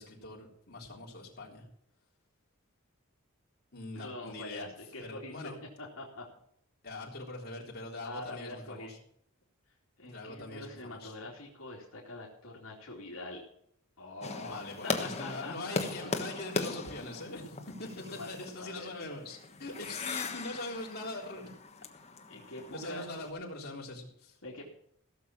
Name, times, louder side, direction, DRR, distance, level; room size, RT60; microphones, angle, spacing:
voice 1, 0.0-1.6 3.7-4.7 5.0-5.6 6.8-9.0 10.0-11.1 14.4-21.5 22.7-24.4, left 2 dB, 50° left, -2 dB, 3.8 m, -42 dB
voice 2, 3.9-5.5 5.8-6.3 8.0-8.9 10.0-13.4 14.0-15.8 17.8-19.2 22.3-23.1 24.4-24.7, left 2 dB, 70° left, -4 dB, 2.9 m, -44 dB
sound 1, 14.2-23.3, left 3 dB, 30° left, 1.3 m, -39 dB
16.5 x 7.1 x 6.0 m, 0.72 s
head